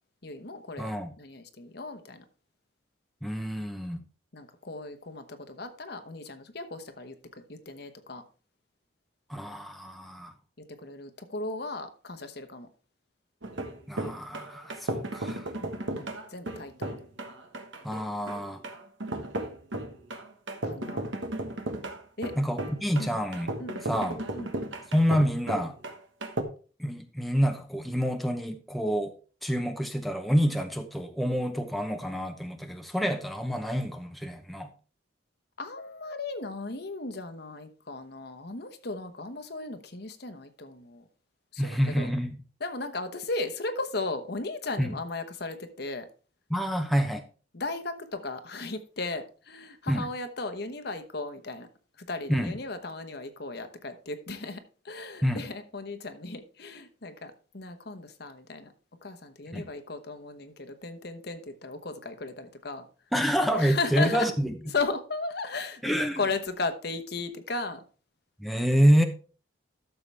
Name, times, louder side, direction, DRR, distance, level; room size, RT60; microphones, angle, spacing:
voice 1, 0.2-2.2 4.3-8.2 10.8-12.7 15.6-17.0 20.6-21.0 22.2-22.3 23.0-23.2 23.6-23.8 24.3-24.5 35.6-41.0 41.5-42.1 42.6-46.1 47.5-51.7 52.0-58.7 59.0-62.9 63.5-64.3 64.6-67.8, left 3 dB, 55° left, 1.1 m, -36 dB
voice 2, 0.8-1.1 3.2-4.0 9.3-10.3 13.9-15.5 17.8-18.6 22.4-23.5 23.8-24.2 24.9-25.7 26.8-29.1 29.4-34.7 41.6-42.4 44.8-45.0 46.5-47.2 49.9-50.1 52.3-52.5 55.2-55.4 59.5-59.6 63.1-64.5 65.8-66.2 68.4-69.0, equal, ahead, 0.8 m, -27 dB
sound 1, 13.4-26.4, right 1 dB, 70° right, 1.4 m, -35 dB
12.5 x 6.9 x 3.4 m
head